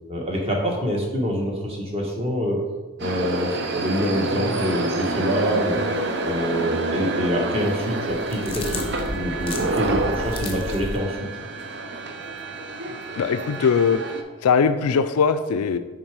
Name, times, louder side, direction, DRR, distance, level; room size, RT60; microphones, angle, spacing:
voice 1, 0.1-2.6 3.0-5.8 6.2-8.8 9.1-11.2, equal, 25° right, -1 dB, 1.1 m, -26 dB
sound 1, 3.0-14.2, right 2 dB, 50° right, 0.6 m, -28 dB
sound 2, 8.1-11.0, left 2 dB, 25° left, 0.7 m, -33 dB
voice 2, 13.2-14.0 14.4-15.8, left 6 dB, 85° left, 11 dB, 0.4 m, -20 dB
6.4 x 3.8 x 4.8 m, 1.2 s
head